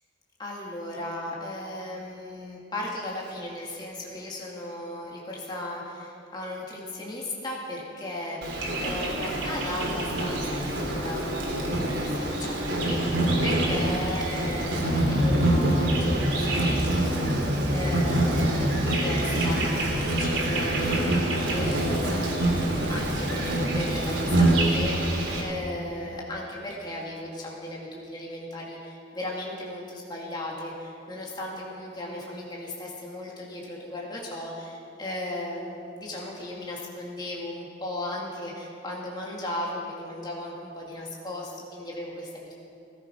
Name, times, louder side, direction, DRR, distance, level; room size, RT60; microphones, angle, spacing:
voice 1, 0.4-42.5, left 1 dB, 25° left, -3 dB, 2.1 m, -36 dB
Insect, 8.4-25.4, right 1 dB, 80° right, 3.2 m, -25 dB
17.0 x 14.0 x 5.2 m, 2.7 s
head